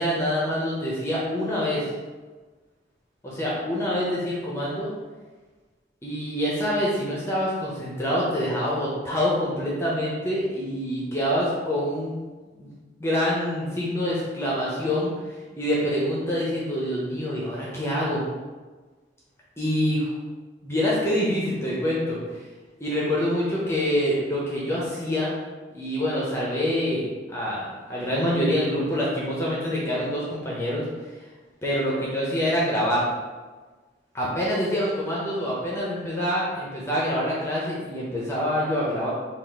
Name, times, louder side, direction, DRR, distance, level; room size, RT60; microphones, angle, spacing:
voice 1, 0.0-1.9 3.2-4.9 6.0-12.2 12.6-12.7 13.0-18.2 19.6-20.1 20.6-22.4 22.8-25.4 25.7-31.3 31.6-33.0 34.1-39.1, equal, 15° left, -6 dB, 0.6 m, -26 dB
4.0 x 2.4 x 3.5 m, 1.3 s
head